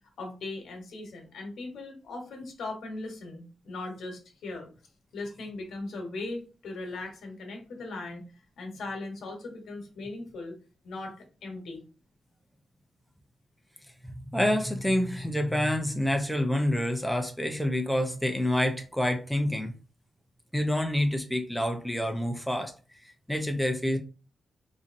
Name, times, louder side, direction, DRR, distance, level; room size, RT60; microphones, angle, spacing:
voice 1, 0.2-4.7 5.1-8.2 8.6-10.5 10.8-11.1 11.4-11.8, left 2 dB, 85° left, 1.1 m, -38 dB
voice 2, 14.3-19.7 20.5-22.7 23.0-24.0, left 1 dB, ahead, 0.4 m, -27 dB
4.0 x 2.6 x 2.5 m
wide cardioid pair, 155°, 0 cm